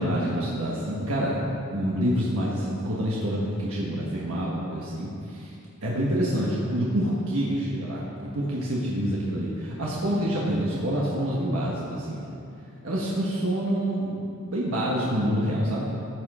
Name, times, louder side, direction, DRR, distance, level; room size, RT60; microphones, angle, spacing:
voice 1, 0.0-1.4 1.7-5.5 5.8-12.3 12.8-15.9, equal, 80° right, -5 dB, 1.4 m, -27 dB
14.0 x 6.4 x 5.0 m, 2.6 s
head